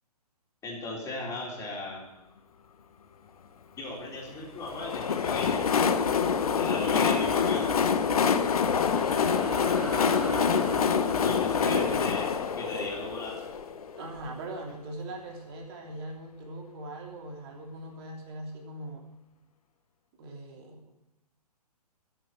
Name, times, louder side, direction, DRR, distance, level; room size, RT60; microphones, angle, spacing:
voice 1, 0.6-2.0 3.8-5.6 6.6-7.7 11.2-12.2 12.6-13.4, left 2 dB, 15° left, -3 dB, 3.9 m, -37 dB
Train, 4.6-14.3, left 6 dB, 65° left, 1.0 m, -26 dB
sound 1, 7.8-14.6, equal, ahead, 3.0 m, -41 dB
voice 2, 9.3-10.0 11.6-12.0 14.0-19.1 20.2-20.8, right 2 dB, 40° right, 1 dB, 3.0 m, -40 dB
13.0 x 7.5 x 7.9 m, 0.92 s
figure-of-eight pair, 125°, 20 cm